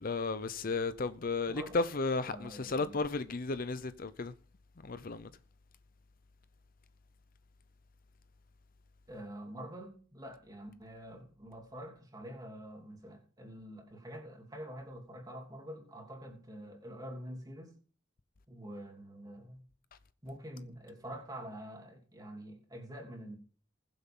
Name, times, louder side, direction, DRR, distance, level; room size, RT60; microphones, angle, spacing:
voice 1, 0.0-4.3 4.8-5.3, left 3 dB, 45° left, 0.6 m, -34 dB
voice 2, 1.5-1.8 2.2-3.0 9.1-17.7 18.5-19.6 20.2-23.4, equal, 20° right, 3.0 m, -46 dB
21.0 x 7.9 x 3.8 m
head